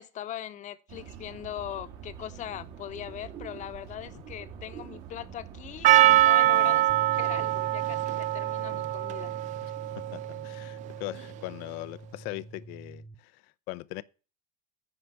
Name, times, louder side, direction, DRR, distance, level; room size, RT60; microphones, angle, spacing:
voice 1, 0.0-9.3, left 11 dB, 40° left, 1.0 m, -40 dB
sound 1, 0.9-6.3, right 8 dB, 60° right, 2.0 m, -45 dB
Percussion, 5.8-10.8, right 15 dB, 40° right, 0.4 m, -24 dB
sound 2, 6.9-13.2, right 2 dB, 10° right, 1.0 m, -44 dB
voice 2, 9.6-14.0, left 19 dB, 60° left, 0.6 m, -40 dB
9.9 x 5.0 x 7.0 m
hypercardioid pair, 90°, 18 cm